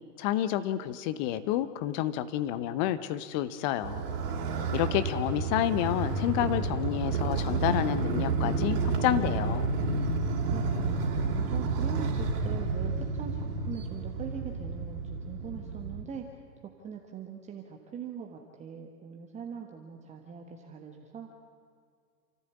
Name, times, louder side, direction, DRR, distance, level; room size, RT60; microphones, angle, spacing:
voice 1, 0.2-4.0 4.7-9.7, left 12 dB, 30° left, 13 dB, 1.0 m, -29 dB
Motorcycle, 3.8-16.0, right 3 dB, 35° right, 3.5 m, -30 dB
voice 2, 10.5-16.3 16.8-21.4, right 7 dB, 15° right, 2 dB, 1.3 m, -42 dB
28.5 x 14.0 x 8.3 m, 2.2 s
figure-of-eight pair, 120°, 49 cm